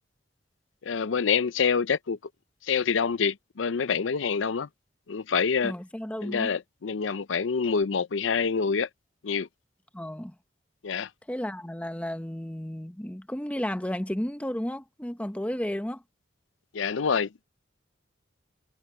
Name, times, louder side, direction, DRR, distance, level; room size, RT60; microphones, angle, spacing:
voice 1, 0.8-2.2 2.6-4.7 5.1-5.7 6.2-8.9 9.2-9.5 10.8-11.1 16.7-17.4, left 6 dB, 85° left, 0.6 m, -26 dB
voice 2, 5.6-6.5 9.9-10.4 11.3-16.0, equal, 5° left, 0.9 m, -33 dB
head